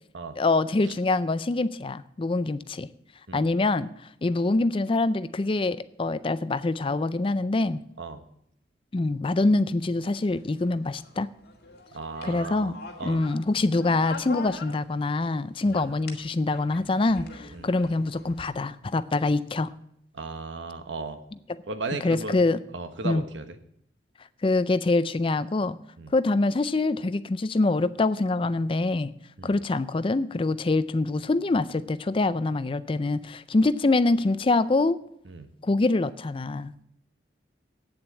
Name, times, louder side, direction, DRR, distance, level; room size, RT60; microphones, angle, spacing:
voice 1, 0.4-2.9 3.3-3.9 4.2-7.8 8.9-11.3 12.2-12.8 13.0-19.7 22.0-22.6 23.0-23.2 24.4-25.8 26.1-29.1 29.4-35.0 35.6-36.8, left 2 dB, 30° left, 15 dB, 0.4 m, -25 dB
sound 1, 10.3-15.3 15.6-18.4, left 4 dB, 60° left, 2.0 m, -43 dB
voice 2, 11.9-13.2 15.6-15.8 17.5-17.7 20.1-21.2 21.6-22.4 22.7-23.6 26.0-26.1 29.4-29.6 35.2-35.5, right 3 dB, 85° right, 9 dB, 1.2 m, -36 dB
8.9 x 7.7 x 8.8 m, 0.71 s
head